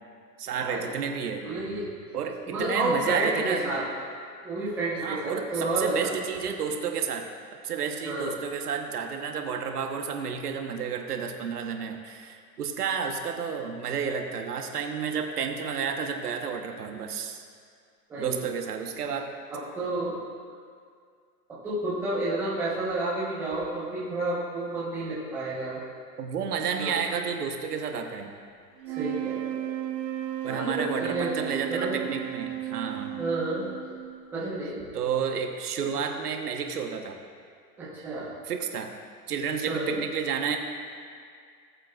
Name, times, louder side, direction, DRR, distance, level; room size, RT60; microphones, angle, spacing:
voice 1, 0.4-1.4 2.1-3.7 5.0-7.3 7.6-17.5 18.2-19.3 26.2-28.3 30.4-33.2 34.9-37.2 38.4-38.9 39.3-40.6, right 6 dB, 65° right, 4 dB, 1.2 m, -31 dB
voice 2, 1.4-1.9 2.5-3.8 4.4-6.1 8.0-8.3 18.1-18.5 19.5-20.2 21.5-25.8 26.8-26.9 28.9-29.6 30.4-32.0 33.2-33.7 34.3-34.8 37.8-38.3 39.7-40.0, right 2 dB, 5° right, -10 dB, 1.0 m, -30 dB
sound 1, 28.8-34.2, right 13 dB, 85° right, 1.0 m, -34 dB
18.5 x 8.0 x 2.4 m, 2.2 s
hypercardioid pair, 175°, 49 cm